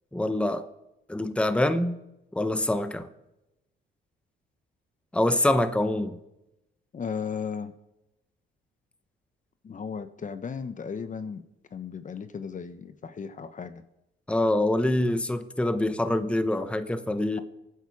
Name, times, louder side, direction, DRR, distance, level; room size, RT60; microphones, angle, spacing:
voice 1, 0.1-0.7 1.1-2.0 2.3-3.1 5.1-6.2 14.3-17.4, left 1 dB, 5° left, 1.0 m, -25 dB
voice 2, 6.9-7.7 9.6-11.4 11.7-13.8, left 6 dB, 40° left, 1.0 m, -35 dB
24.0 x 9.5 x 4.9 m
cardioid pair, 90°, 20 cm